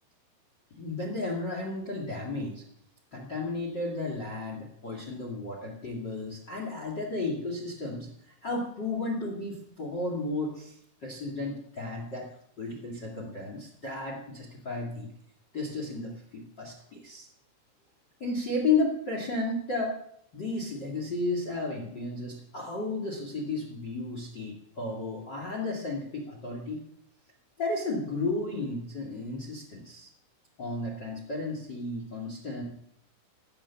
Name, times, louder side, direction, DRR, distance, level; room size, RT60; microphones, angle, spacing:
voice 1, 0.7-2.6 3.1-12.3 12.6-15.1 15.5-17.3 18.2-20.0 20.3-26.8 27.6-30.1 30.6-32.6, left 3 dB, 55° left, 1 dB, 1.2 m, -33 dB
17.0 x 7.1 x 7.2 m, 0.72 s
omnidirectional pair, 5.8 m